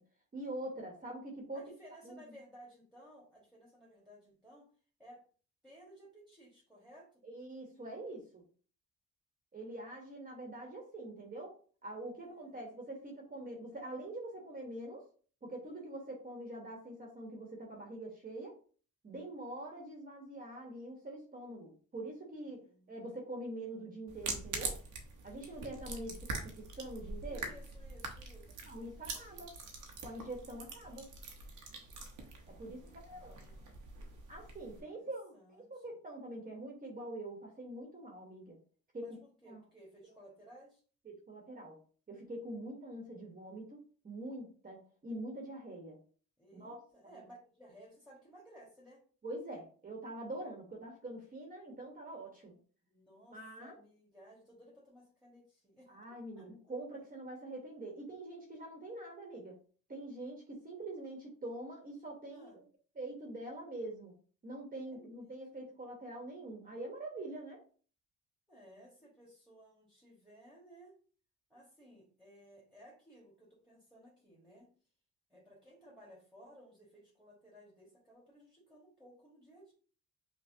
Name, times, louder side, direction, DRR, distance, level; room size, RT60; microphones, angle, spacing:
voice 1, 0.3-1.6 2.0-2.2 7.2-8.4 9.5-11.6 11.8-15.1 15.4-18.6 19.0-22.6 22.9-24.8 25.2-27.5 28.7-29.5 30.0-31.1 32.5-32.8 33.1-33.3 34.3-38.6 38.9-39.0 39.5-39.6 41.0-41.8 42.1-46.0 46.5-46.8 47.0-47.2 49.2-52.6 53.3-53.8 55.9-59.6 59.9-62.6 63.0-64.1 64.4-67.6, right 1 dB, 30° right, 0 dB, 1.0 m, -44 dB
voice 2, 1.5-4.7 5.0-5.2 5.6-7.2 12.1-12.7 22.4-23.2 27.2-28.7 32.4-33.9 34.6-36.0 39.0-40.8 46.4-49.0 52.8-55.9 56.3-56.5 62.3-62.6 64.9-65.7 68.5-71.0 71.5-74.7 75.3-79.7, right 1 dB, ahead, -3 dB, 1.3 m, -58 dB
sound 1, 24.1-34.8, right 3 dB, 85° right, 0.8 m, -44 dB
5.7 x 2.0 x 2.6 m, 0.42 s
cardioid pair, 90°, 30 cm